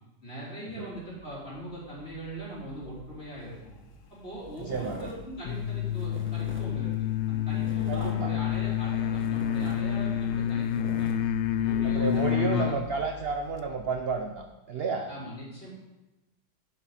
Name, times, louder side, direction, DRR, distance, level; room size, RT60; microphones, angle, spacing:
voice 1, 0.2-3.7 4.1-11.1 11.5-12.8 15.1-15.7, right 1 dB, 35° left, -7 dB, 4.8 m, -40 dB
sound 1, 0.9-14.4, left 3 dB, 65° left, 3.1 m, -50 dB
sound 2, 3.5-3.6 3.9-4.2 4.5-12.3, equal, 5° right, 1.4 m, -47 dB
voice 2, 4.7-5.1 7.9-8.3 11.8-15.1, right 4 dB, 50° right, 4 dB, 0.7 m, -31 dB
sound 3, 5.4-12.8, left 10 dB, 90° left, 0.6 m, -28 dB
11.0 x 10.5 x 4.3 m, 1.0 s
omnidirectional pair, 1.9 m